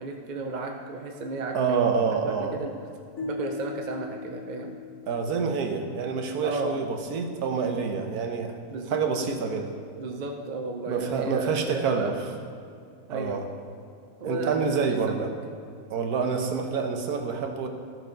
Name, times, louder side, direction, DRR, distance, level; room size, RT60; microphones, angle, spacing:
voice 1, 0.0-1.8 2.3-2.7 3.2-4.7 6.4-6.8 8.7-9.0 10.0-12.2 13.1-13.4 14.2-15.2, right 3 dB, 45° right, 2 dB, 0.6 m, -33 dB
voice 2, 1.5-2.5 5.1-8.5 8.9-9.7 10.9-12.2 13.1-13.5 14.2-15.3 15.9-17.7, right 5 dB, 70° right, 4 dB, 1.5 m, -27 dB
sound 1, 3.2-6.3, left 4 dB, 65° left, 1.2 m, -39 dB
14.0 x 6.4 x 5.2 m, 2.3 s
omnidirectional pair, 1.7 m